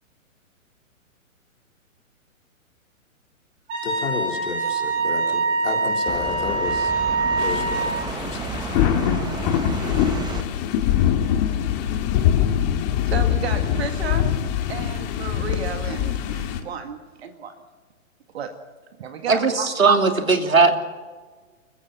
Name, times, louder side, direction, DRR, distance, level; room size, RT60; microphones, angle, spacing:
Wind instrument woodwind instrument, 3.7-8.0, right 3 dB, 30° right, 7.3 m, -24 dB
voice 1, 3.8-6.9 7.4-8.4, left 4 dB, 60° left, 2 dB, 3.9 m, -32 dB
sound 1, 6.1-10.4, right 5 dB, 10° right, 1.2 m, -32 dB
sound 2, 7.4-16.6, left 10 dB, 30° left, 2.0 m, -23 dB
voice 2, 13.1-17.6 18.3-18.6 19.0-19.7, right 6 dB, 50° right, 7 dB, 2.0 m, -33 dB
voice 3, 19.8-20.8, right 4 dB, 75° right, 6 dB, 3.0 m, -17 dB
29.0 x 15.5 x 7.2 m, 1.4 s
figure-of-eight pair, 120°, 41 cm